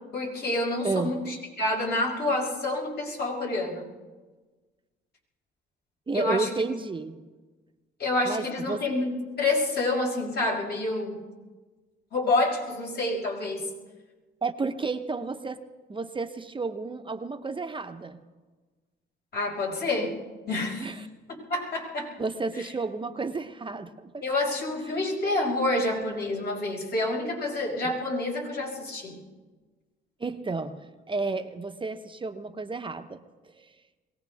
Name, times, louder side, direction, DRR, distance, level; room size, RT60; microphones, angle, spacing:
voice 1, 0.1-3.9 6.1-6.5 8.0-11.2 12.1-13.7 19.3-20.1 20.5-20.9 21.5-22.1 22.6-22.7 24.2-29.2, left 2 dB, 55° left, -2 dB, 5.8 m, -28 dB
voice 2, 6.1-7.2 8.2-8.8 14.4-15.6 15.9-18.2 20.8-21.0 22.2-24.2 30.2-33.2 33.6-33.7, right 3 dB, 25° right, 8 dB, 0.9 m, -31 dB
22.5 x 18.0 x 3.5 m, 1.3 s
cardioid pair, 90°, 20 cm